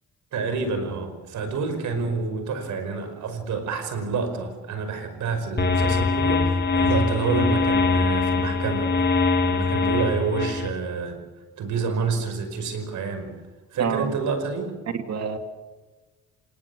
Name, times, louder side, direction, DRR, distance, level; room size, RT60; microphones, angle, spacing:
voice 1, 0.3-9.0 9.4-11.2 11.6-13.3 13.7-14.7, right 4 dB, 75° right, 8 dB, 5.4 m, -28 dB
sound 1, 5.6-10.7, left 3 dB, 35° left, 3.3 m, -22 dB
voice 2, 13.8-14.2 14.9-15.4, right 6 dB, 60° right, 6 dB, 2.8 m, -27 dB
28.0 x 19.5 x 7.1 m, 1.2 s
cardioid pair, 90°, 30 cm